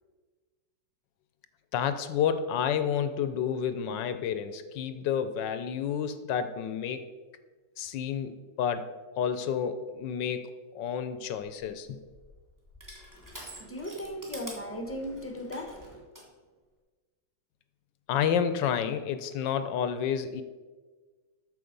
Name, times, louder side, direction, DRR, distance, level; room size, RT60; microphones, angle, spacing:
voice 1, 1.7-7.1 7.8-8.9 9.2-12.0 18.1-20.4, left 8 dB, 75° left, 10 dB, 1.3 m, -30 dB
Crushing, 11.4-16.3, equal, 10° right, 1.8 m, -48 dB
voice 2, 13.1-16.0, equal, 10° left, 3 dB, 0.8 m, -38 dB
8.6 x 6.6 x 5.2 m, 1.4 s
omnidirectional pair, 2.0 m